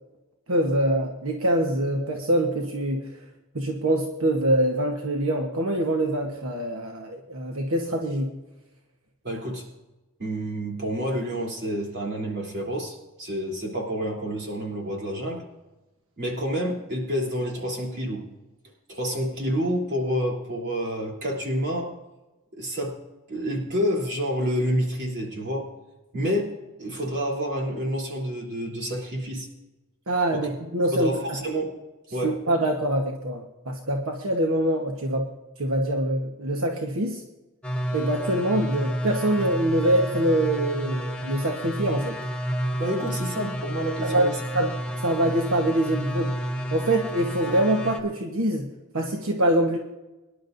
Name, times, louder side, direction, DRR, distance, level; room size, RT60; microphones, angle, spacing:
voice 1, 0.5-3.2 3.5-8.3 30.1-31.1 32.2-35.3 35.6-37.2 37.9-42.2 44.0-44.7 45.0-46.3 46.7-49.8, right 1 dB, 85° right, 1 dB, 1.2 m, -24 dB
voice 2, 9.2-9.7 10.2-15.5 16.2-18.3 18.9-21.9 22.5-23.0 23.3-25.7 26.1-26.5 26.8-29.5 30.3-30.5 30.9-31.7 32.1-32.4 42.8-44.3, equal, 50° right, -2 dB, 3.3 m, -28 dB
sound 1, 37.6-48.0, equal, 5° left, 1.0 m, -30 dB
23.5 x 11.0 x 2.7 m, 1.1 s
head